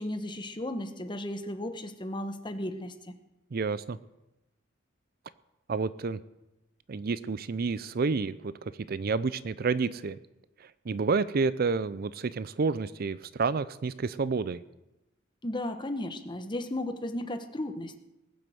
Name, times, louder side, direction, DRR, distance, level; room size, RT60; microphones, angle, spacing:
voice 1, 0.0-3.2 15.4-18.0, left 1 dB, 25° left, 8 dB, 1.2 m, -35 dB
voice 2, 3.5-4.0 5.7-6.2 6.9-10.2 10.6-14.6, right 4 dB, 50° right, 16 dB, 0.5 m, -29 dB
19.5 x 7.7 x 7.8 m, 0.96 s
head